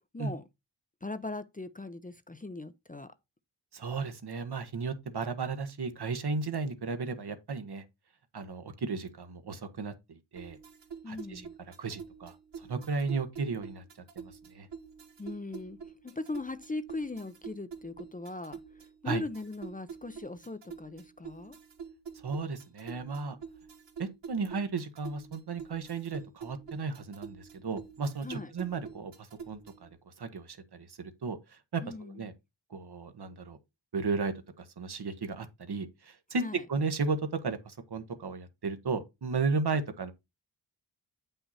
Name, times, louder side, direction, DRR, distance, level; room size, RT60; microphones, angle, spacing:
voice 1, 1.0-3.1 11.0-11.5 15.2-15.8 16.0-18.6 19.0-21.6 28.2-28.5 31.8-32.2 36.4-36.6, left 2 dB, 20° left, 0.6 m, -39 dB
voice 2, 3.7-7.8 8.3-10.6 11.1-13.8 14.1-14.7 19.0-19.2 22.1-23.4 24.0-32.3 32.7-33.6 33.9-40.1, right 4 dB, 65° right, 1.3 m, -35 dB
sound 1, 10.4-29.9, right 6 dB, 85° right, 1.8 m, -47 dB
8.6 x 5.6 x 4.2 m
wide cardioid pair, 110°, 42 cm